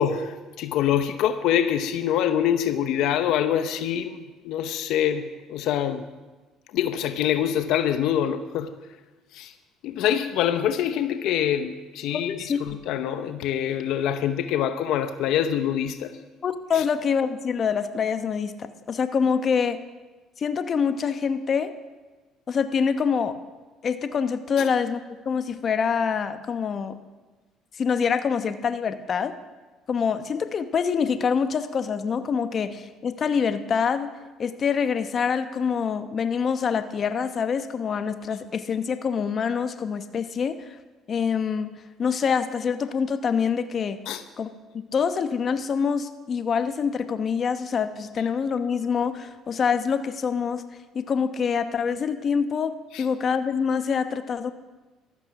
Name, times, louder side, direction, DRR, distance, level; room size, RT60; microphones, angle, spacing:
voice 1, 0.0-6.0 6.7-8.7 9.3-9.5 9.8-12.3 12.6-16.2 16.7-16.8 44.1-44.2 52.9-53.0, left 10 dB, 75° left, 0.8 m, -25 dB
voice 2, 12.1-12.6 16.4-19.8 20.4-21.7 22.5-23.4 23.8-27.0 27.7-29.3 29.9-34.1 34.4-40.8 41.1-41.7 42.0-44.0 44.4-50.6 50.9-54.5, left 6 dB, 45° left, 0.9 m, -25 dB
14.5 x 13.0 x 5.9 m
supercardioid pair, 90°, 0 cm